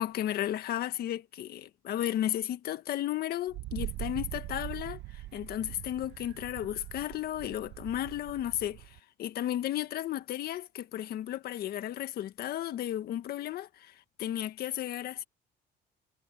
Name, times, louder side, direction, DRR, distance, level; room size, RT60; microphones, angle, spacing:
voice 1, 0.0-15.2, left 12 dB, 65° left, 1.6 m, -34 dB
Wind, 3.5-9.0, right 16 dB, 85° right, 1.2 m, -42 dB
cardioid pair, 110°, 17 cm